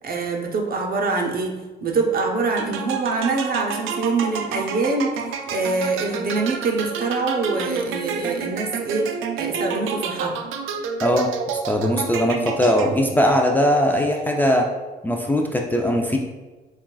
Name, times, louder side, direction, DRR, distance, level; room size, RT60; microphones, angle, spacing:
voice 1, 0.0-9.1 9.4-10.4, right 3 dB, 50° right, 2 dB, 0.8 m, -24 dB
sound 1, 2.6-13.2, right 6 dB, 90° right, 0.4 m, -29 dB
voice 2, 11.7-14.7 15.0-16.2, equal, 10° left, 1 dB, 0.4 m, -20 dB
7.1 x 2.4 x 2.3 m, 1.2 s
cardioid pair, 90°, 20 cm